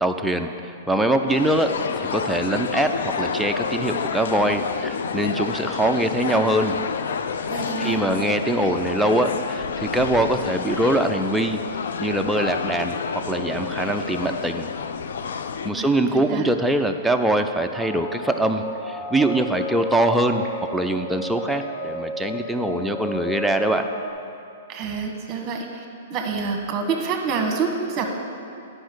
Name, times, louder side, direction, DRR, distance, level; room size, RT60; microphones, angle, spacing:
voice 1, 0.0-6.8 7.8-11.7 12.0-13.0 13.3-14.7 15.6-23.9, right 1 dB, ahead, 4 dB, 0.5 m, -23 dB
sound 1, 1.3-15.7, left 6 dB, 75° left, 0.4 m, -29 dB
voice 2, 7.5-8.0 15.7-15.9 16.1-16.4 24.7-25.8 26.1-28.0, right 5 dB, 25° right, 3 dB, 1.3 m, -27 dB
sound 2, 17.7-24.1, left 1 dB, 25° left, 1.9 m, -33 dB
10.0 x 5.4 x 6.2 m, 2.6 s
hypercardioid pair, 140°, 0 cm